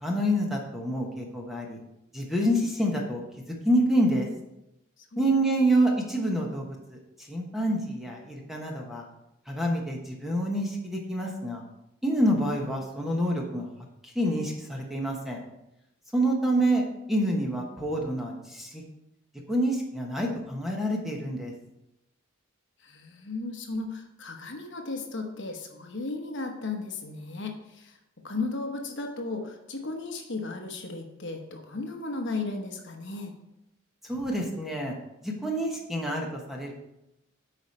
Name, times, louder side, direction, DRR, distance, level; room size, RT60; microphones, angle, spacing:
voice 1, 0.0-1.8 2.1-3.2 3.6-4.3 5.2-7.0 7.3-9.0 9.5-11.6 12.0-13.7 14.0-15.4 16.1-16.8 17.1-18.8 19.5-21.5 34.0-34.9 35.2-36.7, right 1 dB, ahead, -1 dB, 1.1 m, -27 dB
voice 2, 5.0-5.3 22.8-28.0 28.2-33.3, left 3 dB, 55° left, 3 dB, 1.0 m, -35 dB
8.8 x 5.0 x 4.3 m, 0.87 s
head